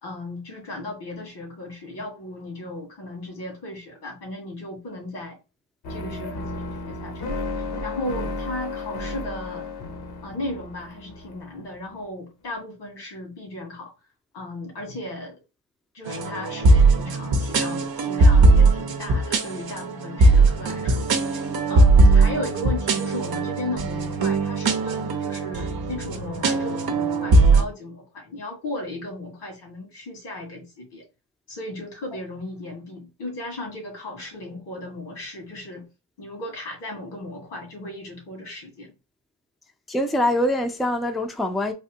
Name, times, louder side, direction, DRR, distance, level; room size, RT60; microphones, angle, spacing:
voice 1, 0.0-5.4 5.9-9.7 10.2-13.9 14.3-15.4 15.9-31.0 31.5-35.9 36.2-38.9, left 1 dB, 90° left, 1.8 m, -36 dB
sound 1, 5.8-11.9, left 2 dB, 65° left, 0.9 m, -33 dB
sound 2, 16.1-27.6, right 3 dB, 65° right, 0.7 m, -19 dB
voice 2, 39.9-41.7, left 1 dB, ahead, 0.5 m, -24 dB
3.5 x 2.5 x 2.8 m
cardioid pair, 65°, 40 cm